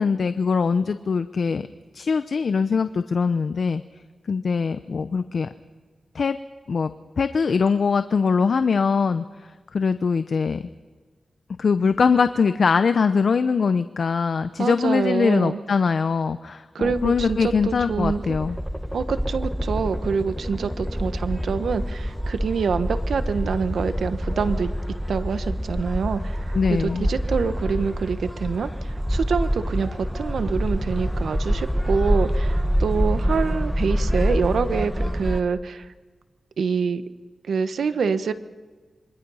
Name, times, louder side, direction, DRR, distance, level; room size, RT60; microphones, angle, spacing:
voice 1, 0.0-1.7 1.9-3.8 4.3-5.5 6.1-6.4 6.7-6.9 7.2-10.7 11.6-18.6 26.5-27.1, left 5 dB, 70° left, 10 dB, 0.7 m, -22 dB
voice 2, 14.6-15.6 16.7-18.2 18.9-24.7 25.1-26.4 26.7-35.9 36.6-37.0 37.5-38.3, right 5 dB, 85° right, 11 dB, 1.1 m, -26 dB
sound 1, 16.8-35.4, equal, ahead, 1.2 m, -26 dB
27.0 x 23.0 x 5.6 m, 1.4 s
wide cardioid pair, 75°, 0 cm